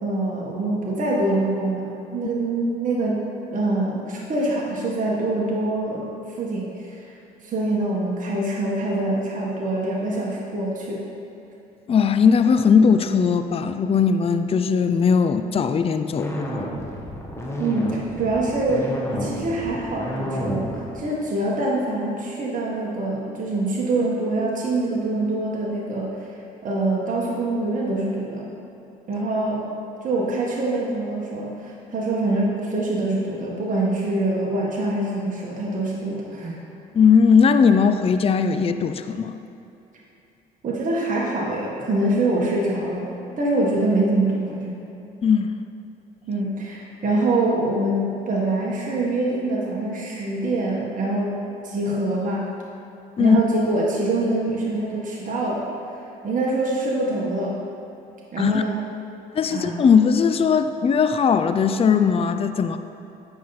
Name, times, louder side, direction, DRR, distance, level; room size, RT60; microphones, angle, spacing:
voice 1, 0.0-3.2 3.5-6.1 6.4-6.7 7.4-11.0 17.6-20.7 20.9-26.1 26.6-28.5 29.1-29.7 30.0-36.6 40.6-43.1 43.4-44.8 46.3-51.3 51.6-52.5 53.2-55.6 56.2-57.5 58.3-58.8 59.5-59.8, right 2 dB, 45° right, -4 dB, 1.7 m, -24 dB
voice 2, 11.9-16.4 36.9-39.3 45.2-45.5 53.2-53.4 58.4-58.6 59.3-62.8, left 6 dB, 30° left, 9 dB, 0.5 m, -18 dB
sound 1, 16.2-21.1, equal, 15° left, 1.6 m, -30 dB
9.4 x 5.7 x 4.1 m, 2.8 s
supercardioid pair, 65°, 18 cm